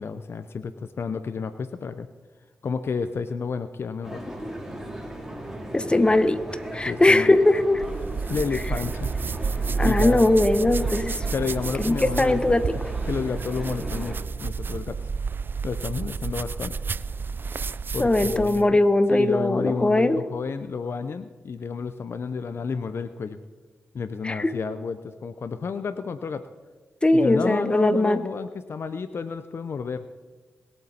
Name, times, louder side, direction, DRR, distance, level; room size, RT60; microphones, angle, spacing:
voice 1, 0.0-2.1 2.6-4.2 6.8-7.4 8.3-9.1 9.8-10.3 11.3-12.4 13.1-15.0 15.6-16.8 17.9-18.8 19.1-23.4 23.9-26.4 27.1-30.0, left 5 dB, 60° left, 12 dB, 0.6 m, -31 dB
sound 1, 4.0-14.2, right 1 dB, 10° right, 3.5 m, -37 dB
voice 2, 5.7-6.4 6.7-7.8 9.8-11.2 11.8-12.7 18.0-20.2 24.2-24.5 27.0-28.2, left 2 dB, 20° left, 11 dB, 1.1 m, -20 dB
sound 2, 7.7-18.7, right 5 dB, 50° right, 0.4 m, -30 dB
21.5 x 8.0 x 4.3 m, 1.3 s
supercardioid pair, 45°, 5 cm